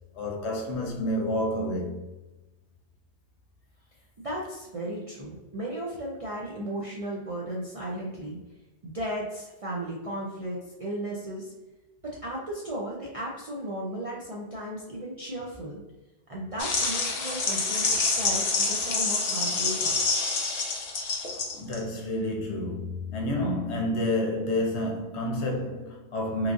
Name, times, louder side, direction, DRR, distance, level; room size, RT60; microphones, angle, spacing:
voice 1, 0.1-2.0 21.6-26.5, left 1 dB, 70° left, 0.9 m, -29 dB
voice 2, 4.2-8.4 8.8-11.5 12.0-15.8 16.3-20.0, right 1 dB, 55° right, 0.4 m, -35 dB
sound 1, 16.6-21.8, left 3 dB, 55° left, 0.4 m, -27 dB
3.0 x 2.4 x 2.5 m
omnidirectional pair, 1.2 m